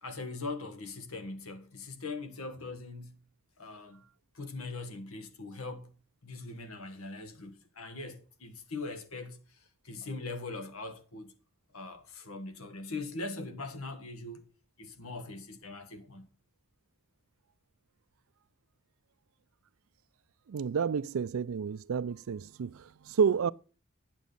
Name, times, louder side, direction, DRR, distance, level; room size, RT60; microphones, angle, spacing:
voice 1, 0.0-3.2 3.6-4.0 4.3-5.9 6.2-9.6 9.8-11.3 11.7-14.5 14.8-16.3, left 3 dB, 90° left, 1.5 m, -41 dB
voice 2, 20.5-23.5, right 6 dB, 75° right, 0.4 m, -30 dB
9.3 x 7.3 x 5.3 m
head